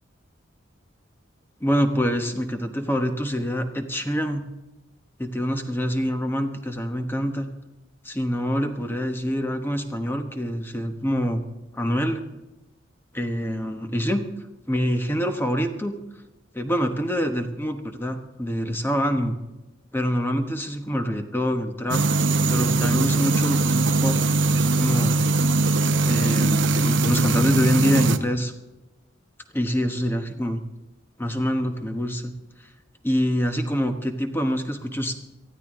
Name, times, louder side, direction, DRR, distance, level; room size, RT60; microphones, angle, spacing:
voice 1, 1.6-4.5 5.2-7.5 8.0-11.4 11.7-12.3 13.1-14.2 14.7-15.9 16.5-19.4 19.9-22.0 22.5-25.2 26.0-28.5 29.5-30.6 31.2-32.3 33.0-35.1, equal, 10° left, 6 dB, 1.1 m, -25 dB
sound 1, 21.9-28.2, right 3 dB, 65° right, 0.7 m, -21 dB
18.5 x 14.0 x 3.7 m, 1.0 s
head